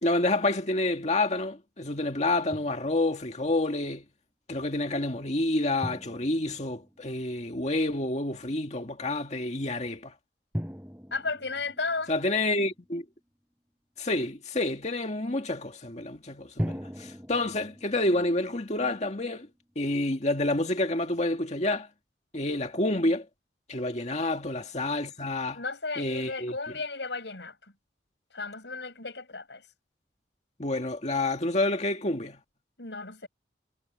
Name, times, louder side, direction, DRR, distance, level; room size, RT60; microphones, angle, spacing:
voice 1, 0.0-4.0 4.5-10.1 12.1-13.0 14.0-19.5 19.8-21.9 22.3-23.3 23.7-25.6 26.0-26.5 30.6-32.4, left 2 dB, 40° left, 2.0 m, -28 dB
Drum, 2.5-3.3 5.8-7.6 10.5-13.0 16.6-19.7, equal, 10° right, 7.6 m, -40 dB
voice 2, 11.1-12.1 23.8-24.0 25.5-27.5 28.3-29.6 32.8-33.3, left 3 dB, 75° left, 5.9 m, -34 dB
head